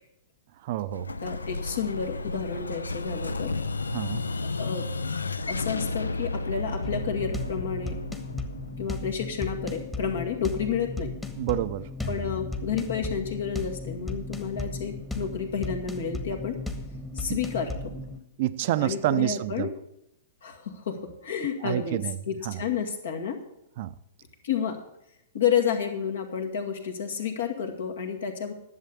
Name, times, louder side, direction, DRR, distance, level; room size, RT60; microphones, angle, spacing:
voice 1, 0.6-1.1 3.9-4.2 11.4-11.9 17.3-17.4 18.4-19.7 21.6-22.2 22.4-22.6 23.8-24.0, right 14 dB, 50° right, 0.5 m, -28 dB
Explosion, 0.9-9.6, left 3 dB, 90° left, 0.5 m, -33 dB
voice 2, 1.2-3.5 4.6-4.9 5.5-8.0 8.8-11.1 12.1-16.6 17.1-17.9 18.8-19.7 20.4-23.4 24.4-24.8 25.3-28.5, left 7 dB, 70° left, 2.1 m, -30 dB
sound 1, 6.8-18.2, left 2 dB, 10° left, 1.2 m, -36 dB
11.0 x 7.4 x 7.0 m
hypercardioid pair, 115°, 0 cm